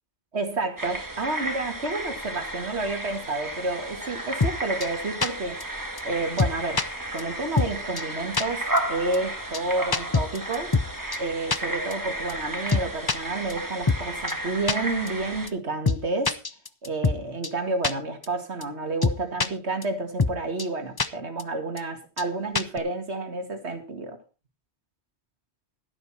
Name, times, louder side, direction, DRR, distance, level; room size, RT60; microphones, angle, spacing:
voice 1, 0.3-5.6 6.0-10.7 11.2-16.4 16.8-24.2, right 2 dB, 90° right, 2.4 m, -30 dB
sound 1, 0.8-15.5, right 1 dB, 20° right, 1.7 m, -33 dB
sound 2, 4.4-4.5 4.8-4.9 5.2-5.3 5.6-5.7 6.0-6.1 6.4-6.8 7.2-7.3 7.6-7.7 8.0-8.1 8.3-8.4 8.8-8.9 9.1-9.2 9.5-9.6 9.9-10.9 11.1-11.2 11.5-11.6 11.9-12.0 12.3-12.4 12.7-13.2 13.5-13.6 13.9-14.0 14.3-14.4 14.7-14.8 15.1-15.2 15.5-15.6 15.9-16.0 16.3-17.2 17.4-17.5 17.8-17.9 18.2-18.3 18.6-18.7 19.0-19.5 19.8-19.9 20.2-20.3 20.6-20.7 21.0-21.1 21.4-21.5 21.8-21.9 22.2-22.3 22.6-22.8, left 4 dB, 25° left, 0.6 m, -23 dB
12.5 x 11.5 x 4.3 m
omnidirectional pair, 1.1 m